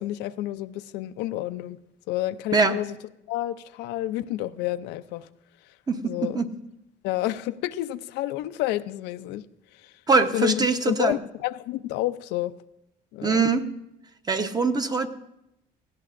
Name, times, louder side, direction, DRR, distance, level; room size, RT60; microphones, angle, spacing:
voice 1, 0.0-1.8 2.1-3.0 3.3-5.3 6.0-6.4 7.0-9.4 9.7-9.9 10.3-12.5 13.1-13.5, left 15 dB, 90° left, 12 dB, 0.5 m, -29 dB
voice 2, 5.9-6.5 10.1-11.2 13.2-13.7 14.3-15.1, right 4 dB, 25° right, 7 dB, 0.8 m, -23 dB
19.0 x 16.0 x 2.5 m, 0.88 s
cardioid pair, 110°, 17 cm